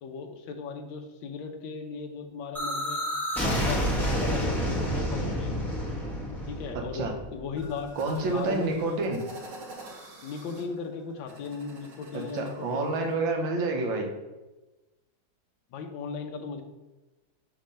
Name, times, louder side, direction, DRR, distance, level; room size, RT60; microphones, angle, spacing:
voice 1, 0.0-3.0 3.4-3.9 4.2-5.7 6.5-9.0 10.2-13.0 15.7-16.6, left 5 dB, 75° left, 5 dB, 1.5 m, -37 dB
sound 1, 2.5-8.3, equal, ahead, 0.8 m, -29 dB
sound 2, 7.6-13.2, right 2 dB, 90° right, 2.0 m, -47 dB
voice 2, 8.0-9.2 12.1-14.1, right 3 dB, 75° right, 2 dB, 1.7 m, -28 dB
6.3 x 3.1 x 5.5 m, 1.1 s
omnidirectional pair, 2.2 m